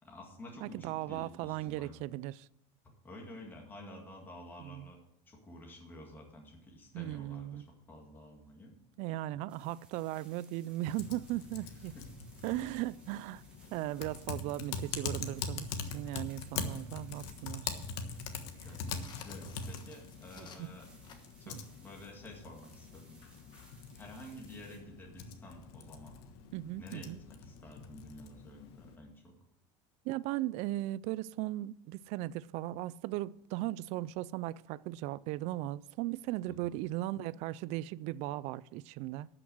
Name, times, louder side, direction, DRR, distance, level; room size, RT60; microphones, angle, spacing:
voice 1, 0.0-1.9 2.8-5.0 5.3-8.7 11.6-12.1 13.3-13.4 18.3-20.9 21.4-23.2 23.9-26.2 26.8-29.3 36.5-36.6, left 1 dB, 15° left, 2.0 m, -51 dB
voice 2, 0.6-2.5 4.6-4.9 6.9-7.7 9.0-12.0 12.4-13.4 13.7-17.9 20.4-20.8 21.5-21.6 26.5-27.2 30.1-39.3, right 16 dB, 55° right, 0.4 m, -37 dB
sound 1, 9.5-24.8, right 2 dB, 5° right, 2.7 m, -63 dB
Typing, 10.9-29.0, left 5 dB, 75° left, 1.4 m, -43 dB
sound 2, 18.7-21.5, left 5 dB, 35° left, 1.4 m, -56 dB
12.5 x 6.0 x 7.8 m
cardioid pair, 155°, 14 cm